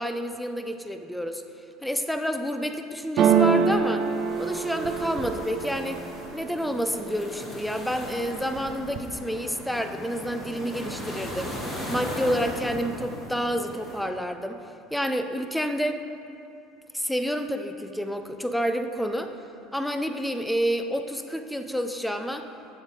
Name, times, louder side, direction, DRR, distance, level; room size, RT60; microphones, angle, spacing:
voice 1, 0.0-1.4 1.8-4.1 4.4-6.0 6.3-11.5 11.9-14.6 14.9-16.0 16.9-19.3 19.7-22.4, equal, 5° left, 7 dB, 0.5 m, -29 dB
sound 1, 3.2-7.0 7.5-8.1 8.4-9.2, right 6 dB, 50° right, 0.6 m, -25 dB
sound 2, 4.0-14.0, equal, 25° left, 2.3 m, -38 dB
12.0 x 7.2 x 3.3 m, 2.5 s
supercardioid pair, 105°, 0 cm